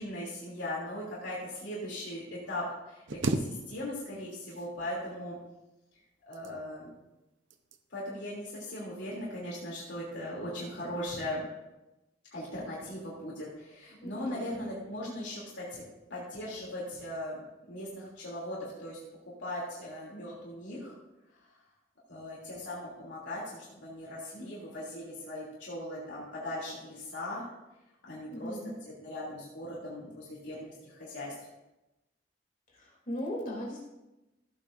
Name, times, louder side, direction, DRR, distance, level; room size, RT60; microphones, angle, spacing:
voice 1, 0.0-5.4 6.3-6.9 7.9-11.4 12.3-15.8 16.1-17.4 17.7-19.0 19.4-20.9 22.1-27.4 28.0-28.6 28.8-31.3, left 1 dB, 80° left, -6 dB, 3.0 m, -39 dB
sound 1, 3.1-4.2 4.4-5.2 6.1-6.9 7.5-7.8 8.3-8.5, right 2 dB, 90° right, 0.7 m, -35 dB
voice 2, 14.0-14.6 28.3-28.8 32.7-33.8, left 1 dB, 45° left, -3 dB, 3.0 m, -38 dB
15.5 x 8.7 x 2.6 m, 0.99 s
head